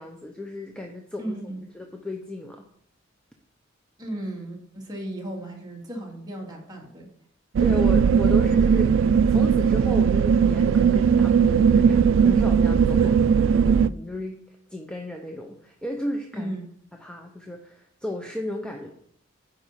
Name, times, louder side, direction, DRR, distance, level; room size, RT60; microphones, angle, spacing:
voice 1, 0.0-2.7 7.6-16.5 17.0-18.9, left 1 dB, 5° left, 2 dB, 0.7 m, -34 dB
voice 2, 1.2-1.6 4.0-7.1 13.0-13.1 16.3-16.6, right 1 dB, 20° right, -1 dB, 2.1 m, -35 dB
sound 1, 7.5-13.9, right 6 dB, 70° right, 0.3 m, -19 dB
9.9 x 4.7 x 5.5 m, 0.69 s
head